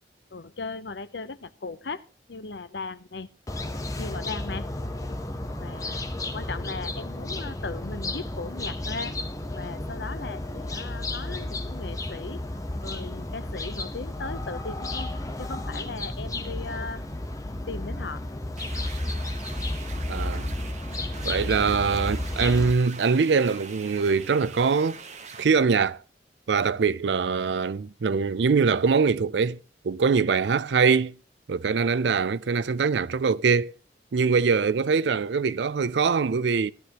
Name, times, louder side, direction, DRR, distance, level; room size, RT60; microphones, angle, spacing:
voice 1, 0.3-2.0 2.3-3.3 4.0-4.7 5.6-6.1 6.3-9.2 9.5-12.4 12.8-15.1 15.4-17.0 17.7-18.2, left 4 dB, 75° left, 0.8 m, -37 dB
sound 1, 3.5-22.7, left 1 dB, 20° left, 1.0 m, -32 dB
sound 2, 18.6-25.4, right 5 dB, 40° right, 1.3 m, -43 dB
voice 2, 20.1-20.5 21.2-25.0 25.4-26.0 26.5-29.6 29.8-31.2 31.5-33.7 34.1-36.7, right 5 dB, 80° right, 0.5 m, -23 dB
14.5 x 12.0 x 3.0 m
head